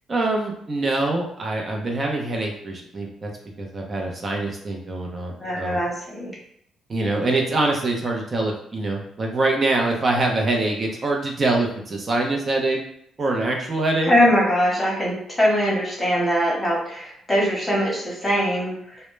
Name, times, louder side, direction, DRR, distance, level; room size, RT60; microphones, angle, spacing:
voice 1, 0.1-3.3 3.6-5.8 6.9-12.8 13.2-14.1, right 2 dB, 35° right, 1 dB, 0.6 m, -24 dB
voice 2, 5.4-6.3 14.1-19.0, equal, 15° left, -4 dB, 1.0 m, -22 dB
2.1 x 2.0 x 3.1 m, 0.72 s
cardioid pair, 90°, 0 cm